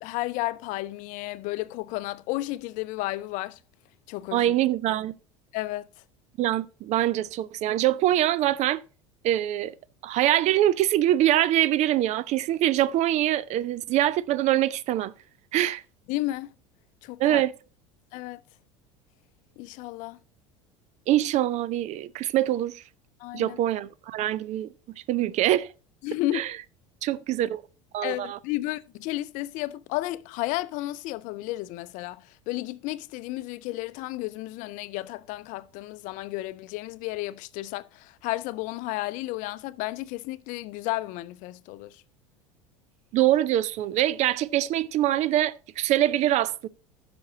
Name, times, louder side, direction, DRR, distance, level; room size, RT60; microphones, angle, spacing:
voice 1, 0.0-3.6 4.1-4.5 5.5-5.9 16.1-16.5 17.0-17.4 18.1-18.4 19.6-20.2 23.2-23.6 26.0-26.4 28.0-42.0, left 17 dB, 55° left, 0.5 m, -32 dB
voice 2, 4.3-5.1 6.4-8.8 9.2-9.7 10.0-15.1 15.5-15.8 17.2-17.5 21.1-22.8 23.3-24.7 25.1-25.7 26.3-26.5 27.0-27.6 27.9-28.4 43.1-46.7, right 13 dB, 45° right, 0.5 m, -24 dB
15.0 x 6.0 x 2.8 m
hypercardioid pair, 75°, 16 cm